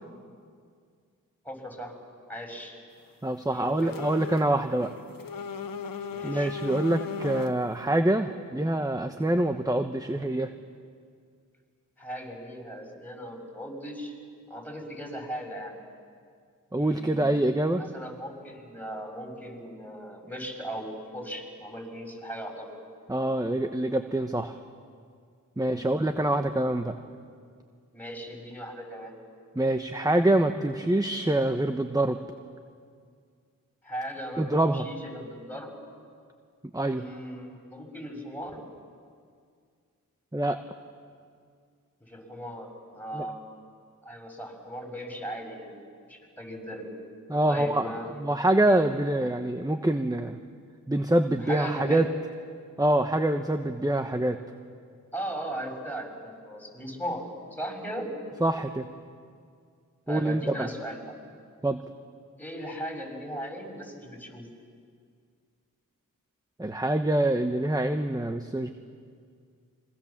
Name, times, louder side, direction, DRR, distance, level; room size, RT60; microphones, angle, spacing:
voice 1, 1.5-1.9 2.3-2.8 3.5-4.0 6.1-6.5 10.1-10.3 12.0-14.1 14.5-15.8 16.8-17.2 17.8-22.7 25.6-25.9 27.9-29.1 33.8-35.8 36.9-38.6 42.0-42.7 42.9-43.4 44.0-45.8 46.1-46.9 47.5-48.2 51.5-52.1 55.1-57.2 57.5-58.1 60.1-61.1 62.4-64.5, equal, 5° left, 2 dB, 6.9 m, -38 dB
voice 2, 3.2-4.9 6.2-10.5 16.7-17.8 23.1-24.6 25.6-26.9 29.5-32.2 34.4-34.9 36.7-37.1 40.3-40.6 43.1-43.2 47.3-50.4 50.9-52.1 52.8-54.4 58.4-58.9 60.1-60.7 61.6-61.8 66.6-68.7, right 1 dB, 10° right, 7 dB, 1.2 m, -25 dB
sound 1, 3.8-4.5 4.8-7.7, left 6 dB, 75° left, 1.3 m, -37 dB
26.0 x 23.5 x 7.4 m, 2.1 s
cardioid pair, 45°, 34 cm